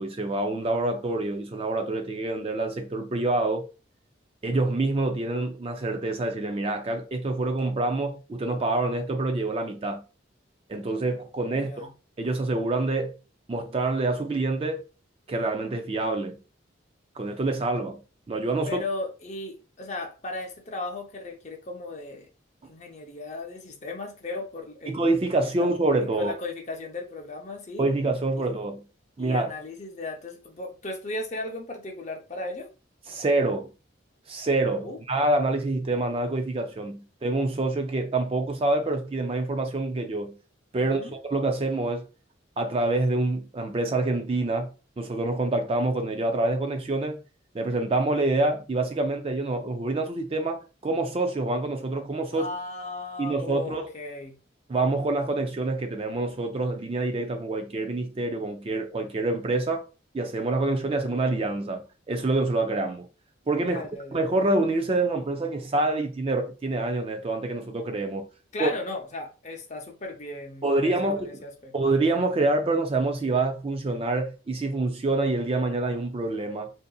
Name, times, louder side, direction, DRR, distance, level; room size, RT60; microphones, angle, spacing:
voice 1, 0.0-3.7 4.4-10.0 10.7-11.9 12.2-13.2 13.5-14.8 15.3-16.4 17.2-18.0 18.3-18.8 24.9-26.3 27.8-28.8 29.2-29.5 33.1-33.7 34.3-40.4 40.7-42.1 42.6-44.7 45.0-47.2 47.5-52.5 53.2-53.8 54.7-59.9 60.1-63.1 63.5-63.8 64.1-68.3 68.6-68.7 70.6-71.3 71.7-76.7, right 2 dB, 30° right, 0.3 m, -26 dB
voice 2, 11.5-11.9 18.7-22.3 22.7-25.0 25.6-27.9 28.4-28.5 29.2-32.7 34.8-35.0 40.8-41.2 52.3-54.4 63.6-64.2 68.5-71.7, left 2 dB, 35° left, 0.7 m, -36 dB
3.8 x 2.6 x 2.3 m
head